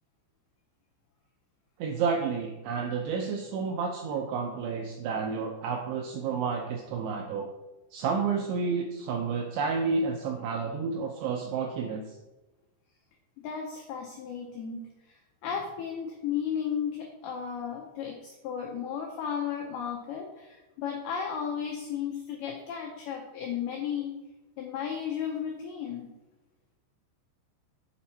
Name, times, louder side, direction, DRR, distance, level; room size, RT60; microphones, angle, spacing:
voice 1, 1.8-7.5 7.9-12.2, right 5 dB, 85° right, 3 dB, 2.4 m, -30 dB
voice 2, 13.4-24.2 24.6-26.1, left 7 dB, 85° left, 1 dB, 2.2 m, -34 dB
7.1 x 4.3 x 4.4 m, 1.1 s
omnidirectional pair, 5.4 m